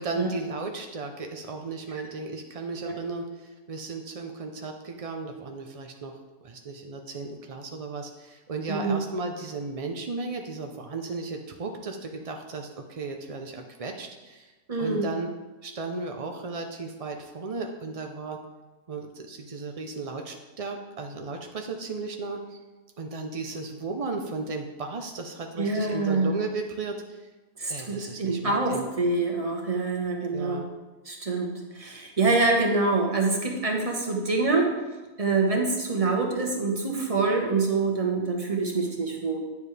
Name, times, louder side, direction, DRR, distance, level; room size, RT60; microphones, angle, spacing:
voice 1, 0.0-6.1 6.4-14.5 14.8-15.3 15.6-18.4 18.9-22.6 23.0-27.3 27.7-28.9 30.3-30.7, right 3 dB, 60° right, 3 dB, 0.3 m, -35 dB
voice 2, 8.7-9.0 14.7-15.1 25.6-26.3 27.6-30.7 31.1-34.7 35.2-39.4, right 3 dB, 25° right, 1 dB, 1.1 m, -25 dB
9.7 x 7.1 x 3.3 m, 1.2 s
omnidirectional pair, 1.6 m